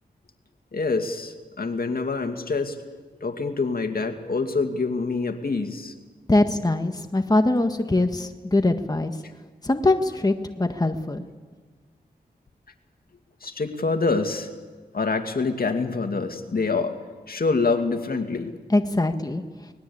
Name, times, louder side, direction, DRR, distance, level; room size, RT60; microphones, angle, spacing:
voice 1, 0.7-2.8 3.2-5.9 13.4-14.5 14.9-16.9 17.3-18.5, left 4 dB, 60° left, 6 dB, 2.3 m, -26 dB
voice 2, 6.3-9.1 9.6-11.2 18.7-19.4, left 2 dB, 20° left, 6 dB, 1.6 m, -22 dB
24.5 x 20.0 x 8.7 m, 1.4 s
cardioid pair, 45°, 17 cm